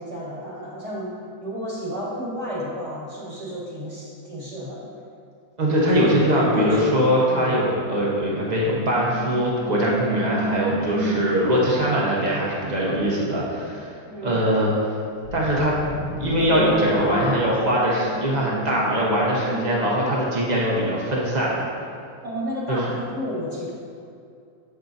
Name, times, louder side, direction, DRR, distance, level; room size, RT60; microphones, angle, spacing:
voice 1, 0.0-4.9 6.0-7.6 10.9-11.3 14.0-14.4 19.5-19.9 22.2-23.7, equal, 20° right, -6 dB, 1.0 m, -32 dB
voice 2, 5.6-13.9 14.2-14.9 15.3-15.8 16.2-21.6 22.7-22.9, equal, 70° right, -5 dB, 0.4 m, -22 dB
sound 1, 8.2-11.7 15.2-19.2, equal, 50° left, 1.4 m, -29 dB
8.3 x 6.5 x 2.6 m, 2.4 s
omnidirectional pair, 2.3 m